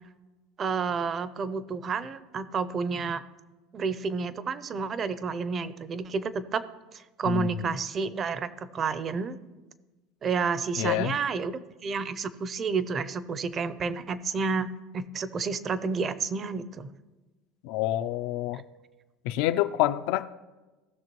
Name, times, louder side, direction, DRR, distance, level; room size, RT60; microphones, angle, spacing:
voice 1, 0.6-3.2 3.7-6.6 6.9-9.4 10.2-11.5 11.8-14.7 14.9-16.9 18.5-18.6, right 5 dB, 25° right, 14 dB, 0.5 m, -30 dB
voice 2, 10.8-11.2 17.6-18.6 19.2-20.3, left 14 dB, 65° left, 12 dB, 0.4 m, -27 dB
18.0 x 6.4 x 3.0 m, 1.2 s
cardioid pair, 160°, 0 cm